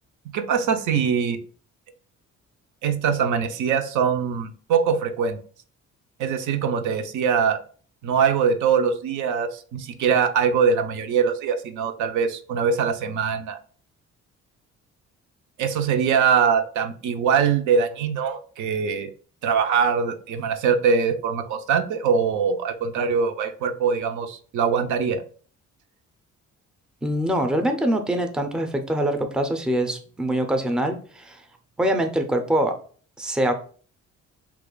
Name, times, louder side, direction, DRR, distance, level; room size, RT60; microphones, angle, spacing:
voice 1, 0.3-1.4 2.8-5.4 6.2-7.6 8.0-13.6 15.6-19.1 19.4-25.2, right 6 dB, 75° right, 7 dB, 0.5 m, -22 dB
voice 2, 27.0-31.4 31.8-32.7 33.2-33.5, right 1 dB, 5° right, 5 dB, 0.4 m, -24 dB
2.9 x 2.3 x 3.7 m, 0.43 s
cardioid pair, 90°, 30 cm